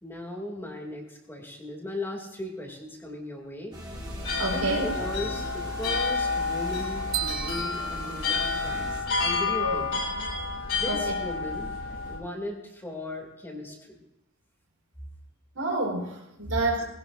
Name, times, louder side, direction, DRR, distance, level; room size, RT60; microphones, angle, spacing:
voice 1, 0.0-3.8 4.5-9.9 10.7-11.7 12.1-14.0, left 1 dB, 10° left, 0 dB, 2.5 m, -37 dB
sound 1, 3.7-9.0, right 1 dB, 20° right, 2.9 m, -41 dB
sound 2, 3.9-12.2, left 4 dB, 70° left, 5.9 m, -30 dB
voice 2, 4.4-4.8 9.6-9.8 10.9-11.1 15.5-17.0, right 2 dB, 90° right, 0 dB, 4.1 m, -29 dB
sound 3, 7.1-9.1, right 14 dB, 70° right, 1.5 m, -35 dB
21.0 x 17.0 x 2.6 m, 0.87 s
head